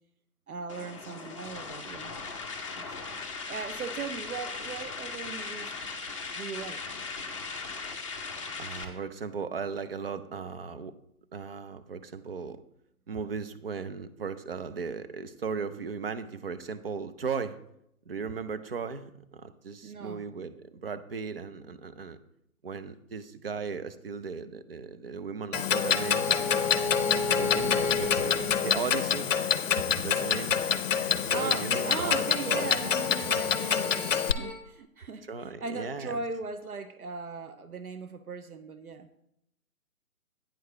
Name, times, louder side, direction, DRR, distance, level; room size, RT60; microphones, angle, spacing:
voice 1, 0.5-2.2 2.7-3.0 3.5-5.7 6.4-6.8 19.8-20.3 29.8-29.9 31.3-39.1, right 4 dB, 75° right, 0.8 m, -38 dB
sound 1, 0.7-8.8, left 4 dB, 20° left, 0.6 m, -38 dB
voice 2, 8.6-10.9 11.3-12.6 13.1-17.6 18.1-22.2 22.6-26.7 27.2-29.3 30.0-30.6 31.3-32.8 35.3-36.2, right 5 dB, 40° right, 0.5 m, -37 dB
Clock, 25.5-34.3, left 7 dB, 60° left, 0.7 m, -27 dB
sound 2, 25.9-29.1 31.9-34.5, left 3 dB, 25° right, 1.3 m, -34 dB
9.2 x 4.7 x 5.5 m
figure-of-eight pair, 145°, 44 cm